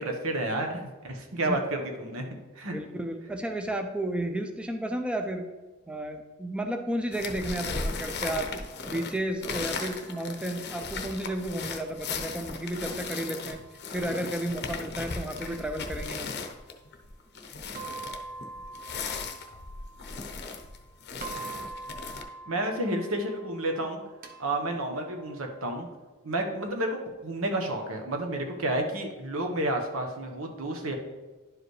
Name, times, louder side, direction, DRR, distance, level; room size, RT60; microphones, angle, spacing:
voice 1, 0.0-2.3 2.6-2.8 22.5-24.0 24.4-25.9 26.2-30.9, right 1 dB, 80° right, 3 dB, 1.1 m, -30 dB
voice 2, 2.7-5.5 5.9-8.5 8.9-13.6 13.9-16.3, right 1 dB, 5° right, 5 dB, 0.4 m, -32 dB
sound 1, 7.1-22.2, left 4 dB, 50° left, 0.7 m, -37 dB
sound 2, 9.8-11.9 13.1-14.1 15.4-16.6 17.8-20.8 21.2-25.6, right 4 dB, 45° right, 0.7 m, -46 dB
11.0 x 4.9 x 3.2 m, 1.2 s
head